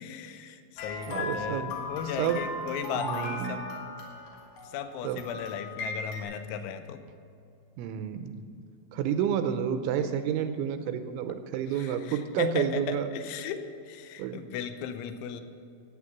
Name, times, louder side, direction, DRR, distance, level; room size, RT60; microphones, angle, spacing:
voice 1, 0.0-3.6 4.6-7.0 11.7-15.4, left 8 dB, 85° left, 9 dB, 3.0 m, -36 dB
sound 1, 0.8-6.2, left 3 dB, 65° left, 4.3 m, -37 dB
voice 2, 1.1-1.7 2.2-2.4 3.0-3.6 5.0-5.2 7.8-8.4 8.9-13.1 14.2-14.4, right 9 dB, 85° right, 8 dB, 2.9 m, -30 dB
15.0 x 9.1 x 7.3 m, 2.6 s
omnidirectional pair, 5.9 m